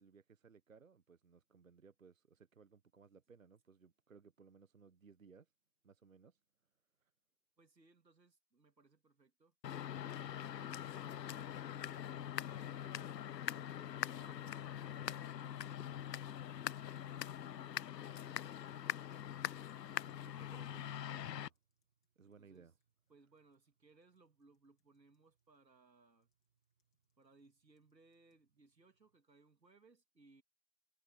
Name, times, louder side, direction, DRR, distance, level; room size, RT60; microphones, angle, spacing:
voice 1, 0.0-5.5 5.8-6.4 7.0-7.1 20.0-21.6 22.2-22.7, right 5 dB, 55° right, 0.8 m, -62 dB
voice 2, 7.6-9.5 10.0-13.2 13.5-16.3 17.0-19.4 22.2-22.7 23.1-26.3 27.2-30.4, right 3 dB, 80° right, 2.9 m, -68 dB
sound 1, 9.5-18.7 18.9-25.6 26.2-28.5, left 8 dB, 5° left, 1.2 m, -96 dB
sound 2, 9.6-21.5, left 10 dB, 75° left, 0.5 m, -43 dB
sound 3, 10.6-29.2, right 7 dB, 30° right, 7.7 m, -88 dB
figure-of-eight pair, 165°, 50 cm